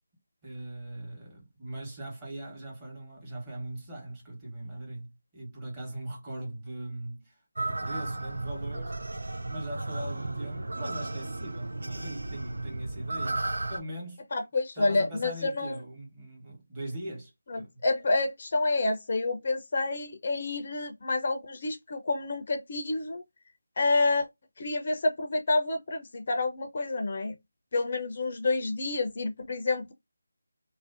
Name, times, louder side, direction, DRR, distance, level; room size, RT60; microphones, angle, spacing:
voice 1, 0.4-7.3 7.6-13.4 13.7-14.2 14.7-17.8, right 1 dB, 20° right, 1.1 m, -40 dB
sound 1, 7.6-13.8, right 2 dB, 70° right, 0.4 m, -34 dB
voice 2, 14.3-15.8 17.5-23.2 23.8-24.3 24.6-27.3 27.7-29.9, left 3 dB, 45° left, 0.4 m, -28 dB
2.5 x 2.0 x 2.4 m
figure-of-eight pair, 160°, 0 cm